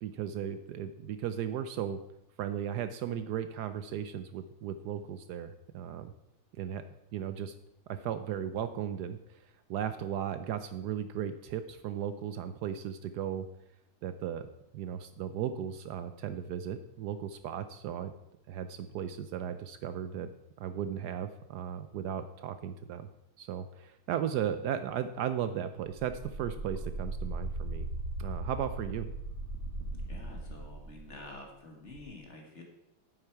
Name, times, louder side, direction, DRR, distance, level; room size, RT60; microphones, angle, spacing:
voice 1, 0.0-2.0 2.4-6.1 6.6-6.8 7.1-7.5 7.9-9.4 9.7-13.5 14.0-18.1 18.5-20.3 20.6-23.1 23.4-27.9 28.2-29.1, right 9 dB, 80° right, 10 dB, 0.9 m, -36 dB
sound 1, 25.9-31.4 31.9-32.0, right 2 dB, 50° right, 0.8 m, -38 dB
voice 2, 30.1-32.6, left 2 dB, 35° left, 1 dB, 1.8 m, -48 dB
9.4 x 8.1 x 4.6 m, 0.81 s
omnidirectional pair, 2.3 m